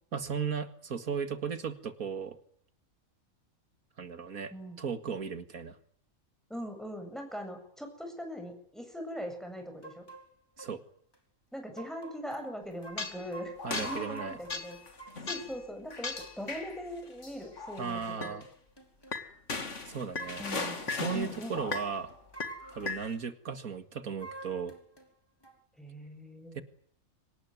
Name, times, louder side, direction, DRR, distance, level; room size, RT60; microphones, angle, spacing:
voice 1, 0.1-2.4 4.0-5.8 10.6-10.8 13.6-14.4 17.8-18.5 19.9-20.4 20.9-22.1 22.7-24.7 26.5-26.6, right 6 dB, 80° right, 11 dB, 2.4 m, -36 dB
voice 2, 6.5-10.0 11.5-14.8 15.3-18.4 20.4-20.8 21.1-21.6 25.8-26.6, equal, ahead, 4 dB, 7.7 m, -41 dB
sound 1, 9.8-10.3 10.6-10.7 11.1-11.2 11.8-12.4 12.8-15.3 16.2-16.4 16.9-17.1 17.4-17.6 18.0-19.2 19.9-20.6 21.0-21.2 21.5-21.7 22.1-23.2 24.2-25.1 25.4-25.6, right 3 dB, 15° left, 3.8 m, -49 dB
sound 2, 13.0-13.3 13.6-15.6 15.9-16.8 17.2-18.4 19.1-22.1 22.4-23.1, left 3 dB, 55° left, 2.7 m, -37 dB
25.0 x 19.5 x 9.5 m, 0.64 s
omnidirectional pair, 1.5 m